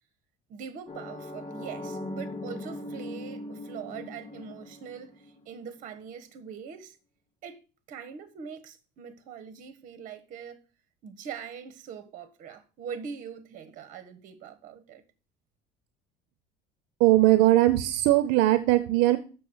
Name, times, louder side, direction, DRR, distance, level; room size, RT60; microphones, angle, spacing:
voice 1, 0.5-7.0 7.4-7.6 7.9-10.6 11.0-15.0, right 7 dB, 55° right, 1.4 m, -42 dB
sound 1, 0.9-5.7, left 1 dB, 25° left, 2.4 m, -40 dB
voice 2, 17.0-19.2, right 16 dB, 80° right, 0.7 m, -20 dB
7.1 x 6.5 x 6.2 m
cardioid pair, 135°, 17 cm